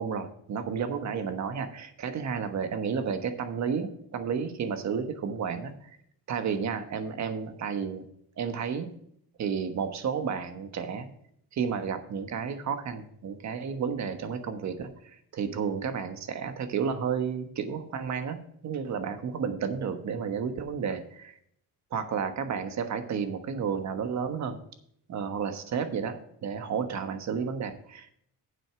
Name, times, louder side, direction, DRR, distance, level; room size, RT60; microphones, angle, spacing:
voice 1, 0.0-5.9 6.3-8.0 8.4-8.9 9.4-11.1 11.5-21.4 21.9-24.6 25.1-28.1, right 6 dB, 45° right, 8 dB, 1.3 m, -32 dB
9.0 x 7.9 x 4.9 m, 0.68 s
cardioid pair, 125°, 40 cm